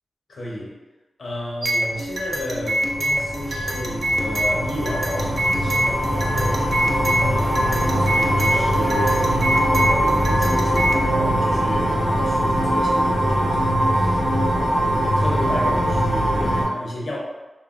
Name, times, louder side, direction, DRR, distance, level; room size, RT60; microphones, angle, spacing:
voice 1, 0.3-0.7 1.2-9.3 9.6-17.2, left 1 dB, 65° left, -4 dB, 0.7 m, -33 dB
sound 1, 1.6-11.0, right 1 dB, 45° right, 0.3 m, -25 dB
sound 2, 2.3-16.6, equal, 15° right, 0.9 m, -21 dB
3.2 x 2.1 x 2.4 m, 1.1 s
wide cardioid pair, 135°, 0 cm